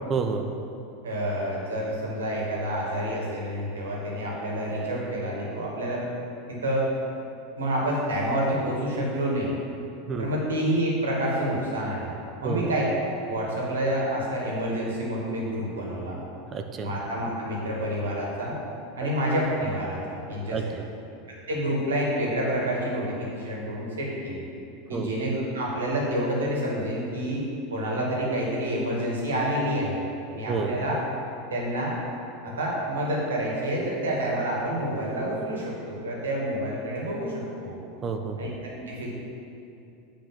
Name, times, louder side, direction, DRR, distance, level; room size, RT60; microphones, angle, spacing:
voice 1, 0.1-0.5 10.1-10.3 12.4-12.7 16.5-16.9 19.0-19.1 20.5-20.9 24.9-25.1 30.5-30.8 38.0-38.4, right 5 dB, 30° right, 5 dB, 0.9 m, -29 dB
voice 2, 1.0-6.1 6.5-6.9 7.5-9.5 10.2-12.1 12.4-12.9 13.2-16.2 16.8-18.5 19.0-20.6 21.5-24.4 24.9-27.4 27.7-30.0 30.3-31.0 31.5-31.9 32.4-37.8 38.4-39.1, right 1 dB, 75° right, -3 dB, 2.3 m, -28 dB
8.8 x 5.1 x 7.6 m, 2.7 s
figure-of-eight pair, 85°, 0 cm